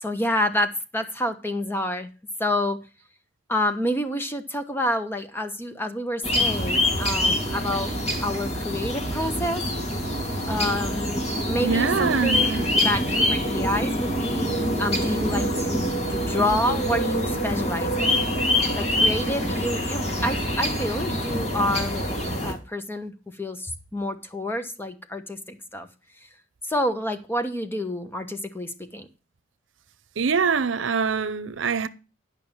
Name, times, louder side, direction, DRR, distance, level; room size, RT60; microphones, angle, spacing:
voice 1, 0.0-2.1 2.4-2.8 3.5-7.9 8.2-9.6 10.5-14.5 14.8-18.2 18.8-25.9 26.6-29.1, left 1 dB, 10° left, 1.1 m, -28 dB
sound 1, 6.2-22.5, left 1 dB, 35° left, 2.7 m, -25 dB
voice 2, 11.6-12.7 30.2-31.9, right 5 dB, 85° right, 0.7 m, -24 dB
10.5 x 5.6 x 7.1 m
head